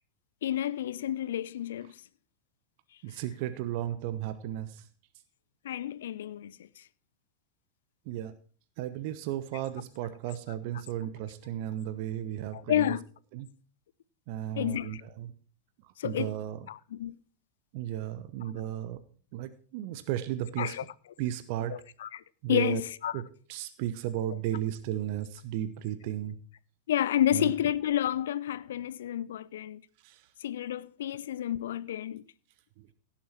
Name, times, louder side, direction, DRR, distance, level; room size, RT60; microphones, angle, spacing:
voice 1, 0.4-1.9 5.6-6.7 9.5-9.6 10.7-10.8 12.5-13.1 14.6-15.0 16.0-16.3 16.7-17.1 20.6-20.9 21.7-22.2 22.5-23.2 24.3-24.4 26.9-29.8 30.4-32.2, left 11 dB, 60° left, 0.5 m, -30 dB
voice 2, 3.0-4.8 8.1-8.3 8.8-12.9 13.3-13.5 14.3-15.3 16.0-16.7 17.7-19.0 19.3-20.8 21.2-21.7 22.4-22.8 23.1-23.2 23.5-26.4 27.3-27.5 30.0-30.2 32.8-32.9, right 12 dB, 45° right, 0.8 m, -34 dB
16.5 x 7.2 x 4.4 m
figure-of-eight pair, 90°, 0 cm